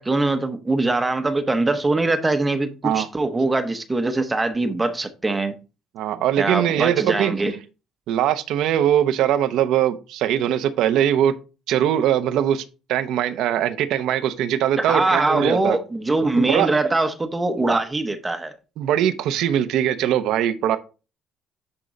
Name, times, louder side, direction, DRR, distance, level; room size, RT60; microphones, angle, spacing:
voice 1, 0.0-5.5 6.4-7.5 14.8-18.6, right 2 dB, 15° right, 0.9 m, -22 dB
voice 2, 6.0-7.3 8.1-11.3 11.7-15.8 16.4-16.7 18.8-20.8, right 10 dB, 75° right, 0.8 m, -21 dB
9.9 x 3.8 x 4.1 m
cardioid pair, 110°, 0 cm